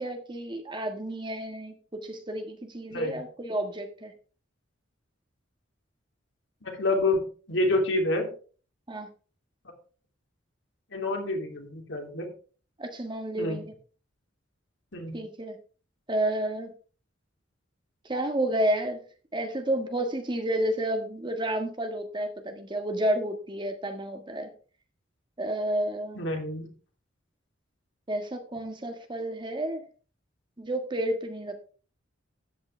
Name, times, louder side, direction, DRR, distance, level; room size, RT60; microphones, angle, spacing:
voice 1, 0.0-4.1 8.9-9.1 12.8-13.7 15.1-15.6 16.1-16.7 18.0-19.0 19.3-24.5 25.4-26.2 28.1-29.8 30.6-31.7, right 1 dB, 25° right, 6 dB, 1.6 m, -30 dB
voice 2, 2.9-3.2 6.6-8.3 10.9-12.3 13.4-13.6 14.9-15.2 26.1-26.7, left 2 dB, 65° left, 3 dB, 2.9 m, -28 dB
13.5 x 9.4 x 3.4 m, 0.39 s
head